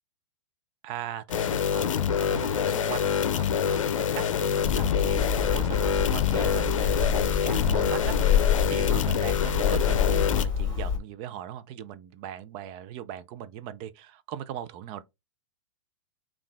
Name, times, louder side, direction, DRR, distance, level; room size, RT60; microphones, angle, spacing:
voice 1, 0.8-15.0, right 10 dB, 35° right, 0.6 m, -39 dB
sound 1, 1.3-10.5, left 8 dB, 80° left, 0.6 m, -26 dB
Hammer, 4.6-11.0, left 7 dB, 25° left, 1.7 m, -27 dB
5.5 x 2.5 x 3.5 m
hypercardioid pair, 130°, 16 cm